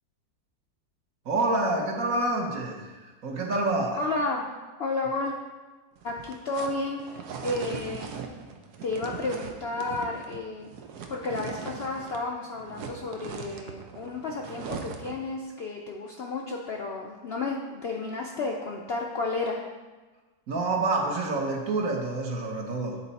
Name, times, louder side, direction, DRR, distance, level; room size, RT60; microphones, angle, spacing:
voice 1, 1.2-4.0 20.5-23.0, right 2 dB, 60° right, 1 dB, 1.3 m, -27 dB
voice 2, 4.0-4.5 4.8-5.3 6.0-7.0 7.4-8.1 8.8-10.7 11.1-19.6, left 3 dB, 65° left, 0 dB, 0.6 m, -32 dB
sound 1, 6.0-12.3 12.5-15.3, right 6 dB, 85° right, 1.2 m, -40 dB
9.3 x 4.0 x 4.1 m, 1.3 s
omnidirectional pair, 1.7 m